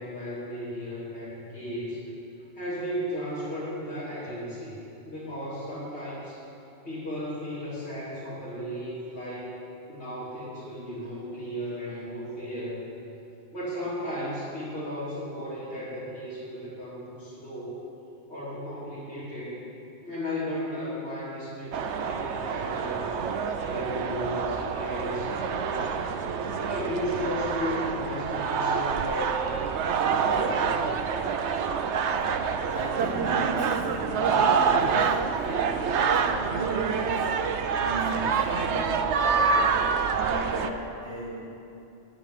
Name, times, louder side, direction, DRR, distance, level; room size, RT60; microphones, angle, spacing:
voice 1, 0.0-2.0 2.5-4.8 5.0-6.4 6.8-9.5 9.9-12.9 13.5-17.8 18.3-19.6 20.0-23.1 23.6-25.9 26.4-29.6 30.0-31.0, equal, 75° left, -12 dB, 3.3 m, -35 dB
sound 1, 21.7-40.7, right 6 dB, 85° right, 1.0 m, -27 dB
voice 2, 32.7-37.3 37.7-39.0 40.4-41.6, right 1 dB, 65° right, -8 dB, 3.7 m, -37 dB
10.0 x 8.5 x 9.1 m, 2.8 s
omnidirectional pair, 1.1 m